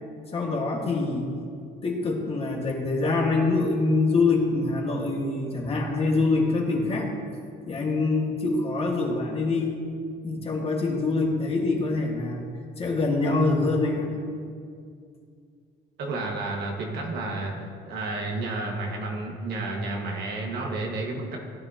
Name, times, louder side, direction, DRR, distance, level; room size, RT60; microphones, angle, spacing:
voice 1, 0.3-1.3 1.8-7.1 7.7-9.8 10.2-12.4 12.8-14.1, left 3 dB, 35° left, 0 dB, 1.9 m, -25 dB
voice 2, 16.0-21.4, right 2 dB, 75° right, 0 dB, 1.9 m, -31 dB
16.5 x 9.3 x 3.0 m, 2.3 s
cardioid pair, 110°, 17 cm